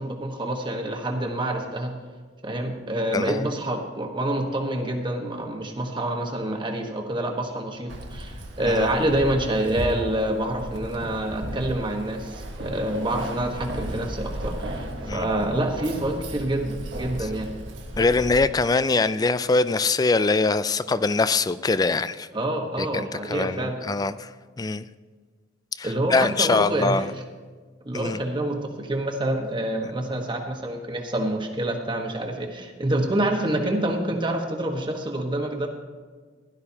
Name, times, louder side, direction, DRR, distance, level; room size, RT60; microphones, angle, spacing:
voice 1, 0.0-1.9 2.4-17.5 22.3-23.8 25.8-27.0 27.8-35.7, right 1 dB, 25° right, 3 dB, 1.3 m, -27 dB
voice 2, 3.1-3.5 8.6-8.9 15.1-15.2 18.0-22.3 22.8-24.3 24.6-24.9 25.8-27.1 27.9-28.2, left 3 dB, 20° left, 14 dB, 0.3 m, -23 dB
Keys jangling, 7.9-18.4, right 1 dB, 90° right, 1.5 m, -35 dB
16.0 x 11.5 x 2.8 m, 1.5 s
head